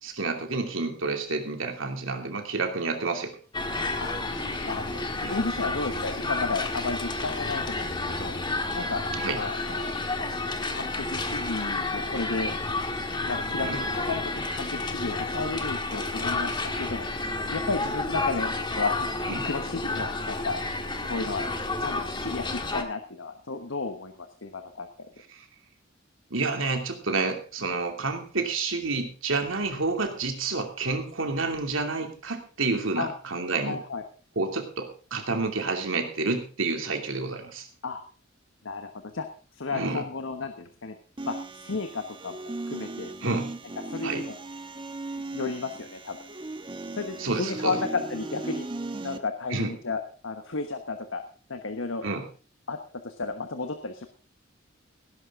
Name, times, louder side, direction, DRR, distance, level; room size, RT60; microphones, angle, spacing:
voice 1, 0.0-3.3 5.2-5.3 9.1-9.4 13.6-13.8 19.3-19.5 25.3-25.5 26.3-33.8 34.4-37.7 39.7-40.1 43.2-43.5 44.0-44.2 47.2-47.8 49.5-49.7 52.0-52.2, right 3 dB, 90° right, 4 dB, 2.8 m, -29 dB
sound 1, 3.5-22.8, left 2 dB, 25° left, 1.6 m, -31 dB
voice 2, 4.7-8.4 8.8-9.0 9.4-9.9 10.7-12.5 13.3-17.0 17.5-20.6 21.0-21.5 21.8-25.1 33.0-33.1 33.7-34.0 37.8-38.0 38.6-39.3 39.5-40.9 41.2-41.4 41.6-43.1 43.9-44.4 45.3-46.2 46.9-48.7 49.0-51.2 51.5-52.0 52.7-54.1, left 3 dB, 85° left, 7 dB, 1.2 m, -33 dB
sound 2, 41.2-49.2, right 2 dB, 25° right, 1.2 m, -37 dB
17.5 x 11.0 x 3.7 m, 0.37 s
head